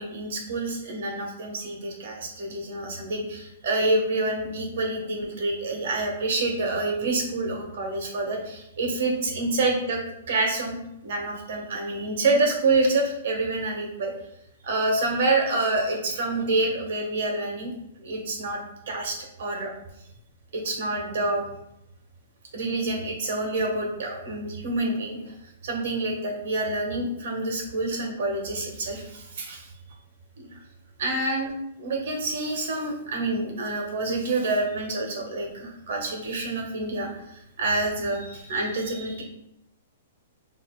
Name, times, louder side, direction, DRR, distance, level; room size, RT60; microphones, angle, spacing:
voice 1, 0.0-10.0 10.3-10.8 11.0-14.1 14.6-17.7 18.0-19.7 20.5-21.4 22.5-25.3 25.6-29.7 30.4-30.6 31.0-31.5 31.8-37.1 37.6-39.2, right 2 dB, 70° right, 1 dB, 1.4 m, -27 dB
7.0 x 3.1 x 2.3 m, 0.81 s
hypercardioid pair, 155°, 0 cm